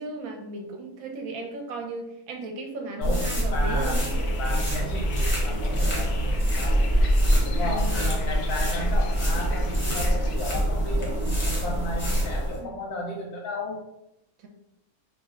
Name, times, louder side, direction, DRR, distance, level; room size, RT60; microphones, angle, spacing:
voice 1, 0.0-4.4 7.7-8.1 12.6-12.7 14.4-14.5, right 3 dB, 75° right, 3 dB, 1.0 m, -36 dB
voice 2, 3.0-4.1 4.4-6.9 7.4-13.8, left 1 dB, 85° left, 0 dB, 1.3 m, -34 dB
sound 1, 3.0-12.6, equal, 30° left, 0.5 m, -24 dB
sound 2, 4.0-10.4, left 5 dB, 70° left, 0.9 m, -43 dB
3.2 x 2.1 x 3.6 m, 0.85 s
omnidirectional pair, 1.6 m